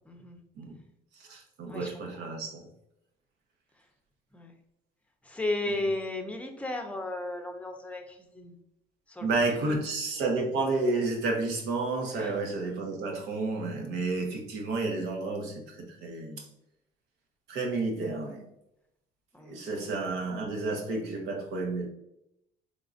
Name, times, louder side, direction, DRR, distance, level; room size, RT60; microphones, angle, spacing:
voice 1, 0.1-0.4 1.7-1.9 4.3-4.5 5.3-8.0 8.3-8.5 9.2-9.3 9.7-9.8 12.2-12.3 19.3-19.5, left 2 dB, 10° left, 3 dB, 0.6 m, -34 dB
voice 2, 1.2-2.7 5.6-5.8 9.2-16.4 17.5-18.4 19.4-21.9, right 3 dB, 85° right, 1 dB, 1.0 m, -31 dB
3.8 x 3.6 x 2.5 m, 0.81 s
cardioid pair, 110°, 17 cm